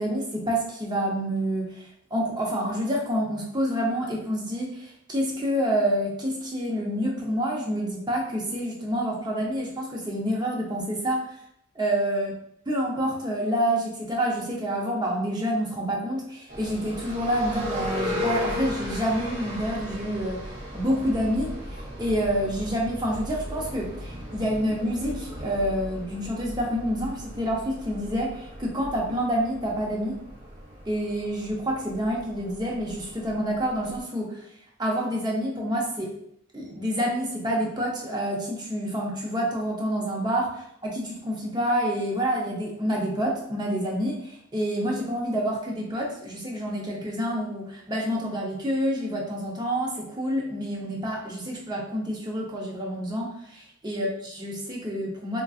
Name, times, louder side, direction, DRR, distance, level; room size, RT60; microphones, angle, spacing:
voice 1, 0.0-11.3 11.8-12.3 12.7-20.4 20.7-30.2 30.9-34.4 34.8-36.1 36.5-55.4, equal, 20° right, -2 dB, 0.7 m, -28 dB
sound 1, 16.5-34.0, left 1 dB, 50° right, 1.0 m, -36 dB
4.5 x 2.6 x 2.4 m, 0.72 s
head